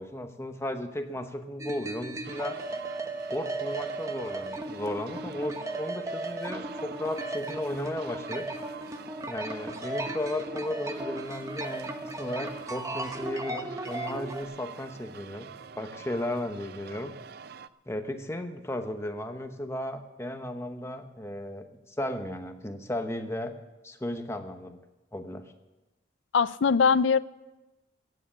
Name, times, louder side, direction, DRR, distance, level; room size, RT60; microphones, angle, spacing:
voice 1, 0.0-2.6 3.3-8.5 9.3-15.5 15.8-17.1 17.9-23.5 23.8-24.8 25.1-25.4, left 1 dB, 15° left, 7 dB, 0.9 m, -35 dB
sound 1, 1.6-14.4, right 2 dB, 15° right, 0.9 m, -36 dB
sound 2, 2.2-17.7, right 6 dB, 50° right, 0.4 m, -46 dB
voice 2, 26.3-27.2, left 5 dB, 70° left, 18 dB, 0.4 m, -21 dB
15.5 x 7.5 x 8.6 m, 1.1 s
head